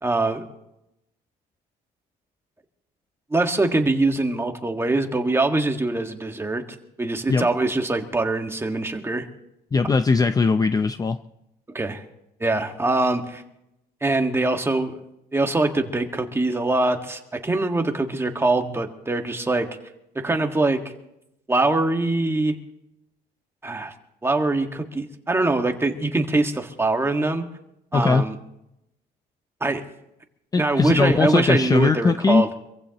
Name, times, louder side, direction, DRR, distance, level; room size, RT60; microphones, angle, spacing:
voice 1, 0.0-0.4 3.3-6.7 7.0-9.3 11.7-12.0 12.4-13.4 14.0-15.0 15.3-19.7 20.2-20.8 21.5-22.6 23.6-23.9 24.2-27.4 27.9-28.4 29.6-29.8 30.6-32.5, right 2 dB, 15° right, 4 dB, 1.6 m, -23 dB
voice 2, 9.7-11.2 27.9-28.3 30.5-32.4, left 4 dB, 20° left, 10 dB, 0.5 m, -20 dB
26.0 x 15.5 x 3.0 m, 0.86 s
cardioid pair, 110°, 17 cm